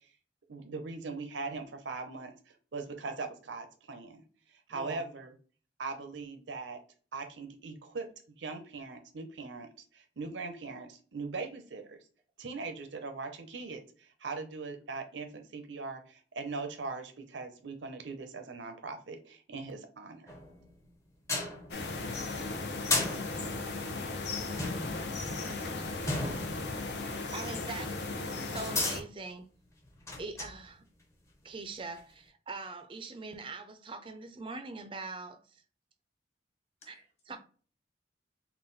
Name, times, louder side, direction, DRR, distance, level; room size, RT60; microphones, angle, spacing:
voice 1, 0.5-2.3 2.7-4.2 4.7-5.3 5.8-6.8 7.1-8.1 8.4-12.0 12.4-20.3, right 3 dB, 80° right, 0.7 m, -40 dB
voice 2, 4.7-5.0 27.3-28.1 28.4-29.5 30.2-30.8 31.4-35.4 36.9-37.4, right 3 dB, 30° right, 0.4 m, -42 dB
sound 1, 20.3-20.9 21.3-22.1 22.9-23.9 24.6-27.4 27.8-27.9 28.6-29.0 29.9-30.6 32.0-32.1, left 2 dB, 15° left, 0.6 m, -35 dB
sound 2, 21.7-29.0, left 3 dB, 65° left, 0.7 m, -36 dB
voice 3, 24.8-26.6 36.8-36.9, left 1 dB, 35° left, 1.4 m, -51 dB
3.9 x 2.2 x 4.0 m
head